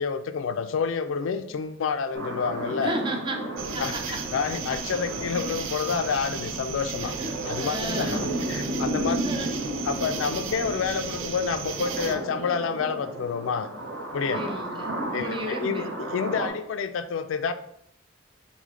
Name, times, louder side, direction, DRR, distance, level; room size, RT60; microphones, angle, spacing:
voice 1, 0.0-3.0 3.8-7.1 7.5-9.2 9.9-13.7 14.1-14.4 15.1-17.5, left 6 dB, 80° left, 11 dB, 0.4 m, -29 dB
sound 1, 2.1-16.5, right 1 dB, 70° right, 0.9 m, -33 dB
voice 2, 2.8-3.4 3.7-4.2 7.0-8.3 9.1-9.5 14.3-15.9, right 1 dB, 25° right, 3 dB, 0.5 m, -33 dB
sound 2, 3.6-12.1, right 6 dB, 85° right, 0.5 m, -35 dB
6.2 x 2.1 x 3.7 m, 0.74 s
head